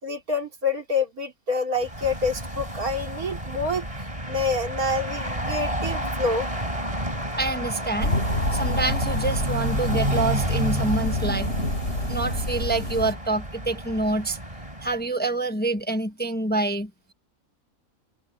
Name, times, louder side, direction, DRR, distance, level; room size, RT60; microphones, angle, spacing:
voice 1, 0.0-3.8 4.3-6.5, left 3 dB, 85° right, 4.0 m, -27 dB
sound 1, 1.8-15.1, right 1 dB, 25° right, 4.6 m, -31 dB
voice 2, 7.4-8.2 8.5-11.5 12.1-14.4 14.8-16.9, right 2 dB, 5° left, 1.1 m, -26 dB
sound 2, 8.0-13.1, left 1 dB, 50° left, 7.2 m, -27 dB
omnidirectional pair, 1.5 m